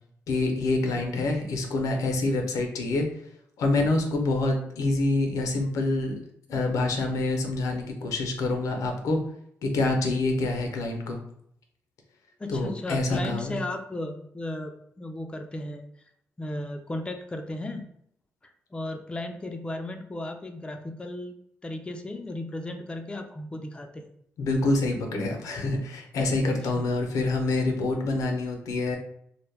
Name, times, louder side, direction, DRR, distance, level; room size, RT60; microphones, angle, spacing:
voice 1, 0.3-3.1 3.6-6.2 6.5-9.2 9.6-11.2 12.5-13.6 24.4-29.0, left 2 dB, 80° left, 3 dB, 0.5 m, -26 dB
voice 2, 0.9-1.2 12.4-15.8 16.4-17.9 18.4-21.3 21.6-24.1, left 1 dB, 20° left, 4 dB, 0.3 m, -35 dB
2.1 x 2.1 x 3.2 m, 0.70 s
cardioid pair, 60°, 6 cm